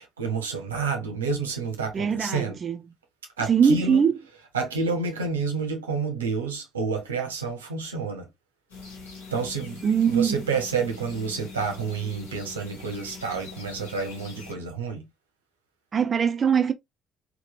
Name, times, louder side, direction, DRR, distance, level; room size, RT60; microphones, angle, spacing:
voice 1, 0.0-2.6 3.4-4.0 4.5-8.3 9.3-9.8 10.1-15.1, right 4 dB, 90° right, 0.5 m, -29 dB
voice 2, 1.9-2.8 3.5-4.1 9.8-10.4 15.9-16.7, right 7 dB, 45° right, 0.4 m, -22 dB
sound 1, 8.7-14.5, left 4 dB, 90° left, 1.0 m, -43 dB
2.8 x 2.1 x 2.6 m
hypercardioid pair, 50°, 0 cm